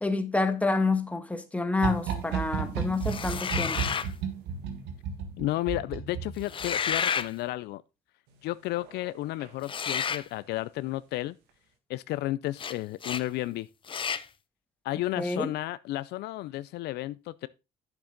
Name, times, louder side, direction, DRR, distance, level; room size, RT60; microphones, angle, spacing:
voice 1, 0.0-3.8 15.2-15.5, left 3 dB, 10° left, 1.4 m, -28 dB
sound 1, 1.8-7.0 8.7-9.1 9.4-9.5, right 6 dB, 85° right, 1.6 m, -34 dB
sound 2, 3.0-4.1 6.4-7.3 9.6-10.3 12.6-12.7 13.0-13.2 13.9-14.3, left 7 dB, 30° left, 0.5 m, -30 dB
voice 2, 5.4-7.8 8.4-11.4 11.9-13.7 14.8-17.5, left 17 dB, 75° left, 0.4 m, -32 dB
9.1 x 7.2 x 3.9 m
cardioid pair, 110°, 17 cm